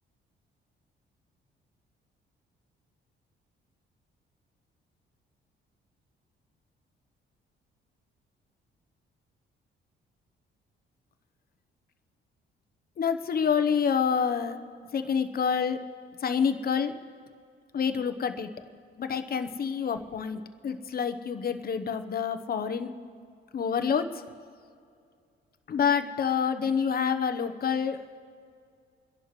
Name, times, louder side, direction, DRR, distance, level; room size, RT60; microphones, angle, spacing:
voice 1, 13.0-14.6 14.9-15.9 16.2-17.0 17.7-18.6 19.0-23.0 23.5-24.2 25.7-28.1, left 6 dB, 50° left, 9 dB, 1.0 m, -27 dB
29.0 x 11.0 x 3.2 m, 2.3 s
cardioid pair, 90°, 20 cm